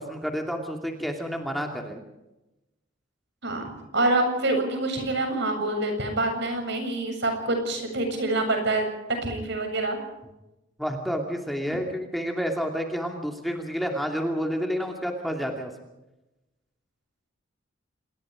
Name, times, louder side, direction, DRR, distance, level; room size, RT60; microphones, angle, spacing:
voice 1, 0.0-2.0 10.8-15.7, equal, ahead, 3 dB, 2.6 m, -29 dB
voice 2, 3.4-8.9 9.2-10.0, right 2 dB, 60° right, 5 dB, 7.5 m, -26 dB
28.0 x 20.5 x 5.1 m, 0.95 s
head